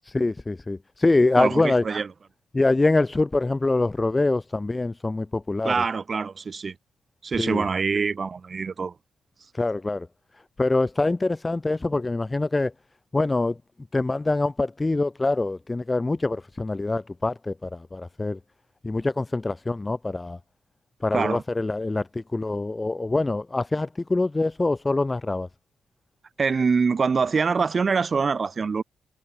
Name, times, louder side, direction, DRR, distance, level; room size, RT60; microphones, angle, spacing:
voice 1, 0.1-1.8 2.5-5.8 7.4-7.6 9.5-10.1 10.6-12.7 13.1-13.6 13.9-18.4 18.8-20.4 21.0-25.5, left 2 dB, 15° left, 3.3 m, -24 dB
voice 2, 1.4-2.1 5.6-6.7 7.2-8.9 21.1-21.4 26.4-28.8, right 5 dB, 35° right, 6.6 m, -24 dB
cardioid pair, 120°, 0 cm